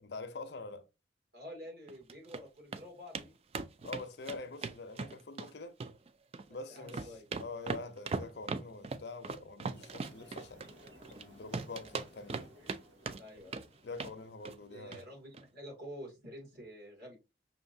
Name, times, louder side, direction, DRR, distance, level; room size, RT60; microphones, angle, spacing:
voice 1, 0.0-0.9 3.8-5.8 6.5-10.7 11.1-12.5 13.8-15.1, left 3 dB, 65° left, 0.6 m, -45 dB
voice 2, 1.3-3.4 6.5-7.3 13.2-13.6 14.7-17.2, equal, 55° right, 2.2 m, -49 dB
sound 1, 1.9-2.4 2.7-2.8 3.1-3.3 3.5-5.5 5.8-6.5 6.8-11.2 11.5-12.8 13.1-13.7 14.0-14.2 14.4-14.6 14.9-15.0 15.3-15.4, right 4 dB, 30° right, 0.3 m, -39 dB
sound 2, 9.7-14.6, equal, 75° right, 1.9 m, -59 dB
5.7 x 2.6 x 2.6 m
head